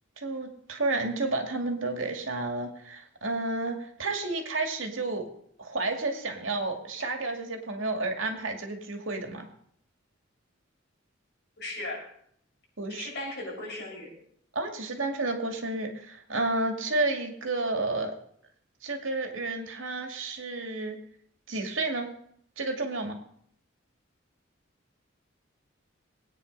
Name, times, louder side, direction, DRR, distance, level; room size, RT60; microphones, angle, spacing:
voice 1, 0.2-5.3 5.6-9.5 12.8-13.1 14.5-18.1 18.8-21.0 21.5-22.1 22.6-23.2, right 2 dB, 75° right, 4 dB, 2.3 m, -31 dB
voice 2, 11.6-12.0 12.9-14.1, left 2 dB, 60° left, -3 dB, 6.8 m, -37 dB
20.0 x 9.3 x 5.4 m, 0.68 s
head